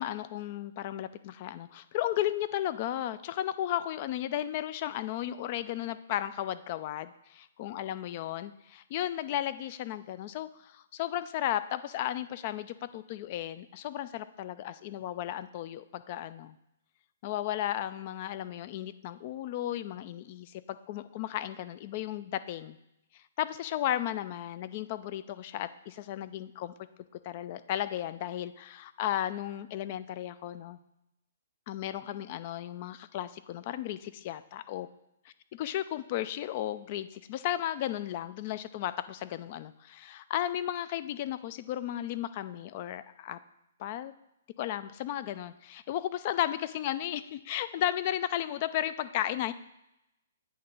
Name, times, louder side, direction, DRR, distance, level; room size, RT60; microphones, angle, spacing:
voice 1, 0.0-16.6 17.2-22.8 23.1-26.7 27.2-30.8 31.7-34.9 35.6-43.4 43.8-44.1 44.6-49.5, left 12 dB, 40° left, 14 dB, 0.3 m, -34 dB
8.5 x 3.0 x 5.3 m, 0.86 s
hypercardioid pair, 130°, 0 cm